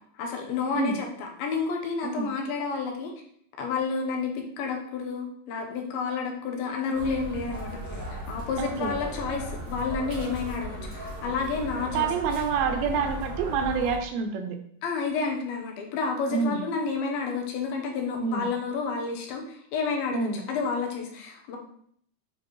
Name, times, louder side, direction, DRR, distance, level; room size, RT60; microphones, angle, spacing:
voice 1, 0.2-3.1 3.6-12.1 14.8-21.6, left 5 dB, 85° left, 1 dB, 3.0 m, -30 dB
sound 1, 6.9-14.0, equal, 40° right, 2.5 m, -36 dB
voice 2, 8.6-8.9 11.9-14.6 16.3-16.6 18.2-18.5 20.1-20.4, right 6 dB, 85° right, 5 dB, 2.7 m, -27 dB
9.2 x 4.5 x 3.2 m, 0.67 s
omnidirectional pair, 4.2 m